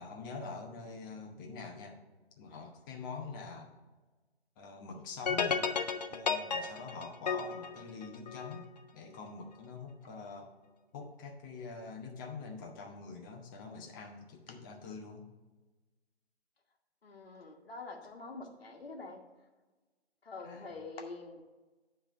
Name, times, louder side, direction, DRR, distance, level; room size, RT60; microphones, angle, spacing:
voice 1, 0.0-2.0 2.4-3.7 4.6-5.7 6.1-10.5 10.9-15.3 20.4-20.7, left 4 dB, 20° left, 1 dB, 0.8 m, -45 dB
sound 1, 5.3-8.6, left 6 dB, 40° left, 0.5 m, -33 dB
voice 2, 17.0-19.2 20.2-21.4, left 3 dB, 60° left, 2 dB, 1.3 m, -46 dB
10.0 x 3.4 x 6.5 m, 1.2 s
figure-of-eight pair, 135°, 33 cm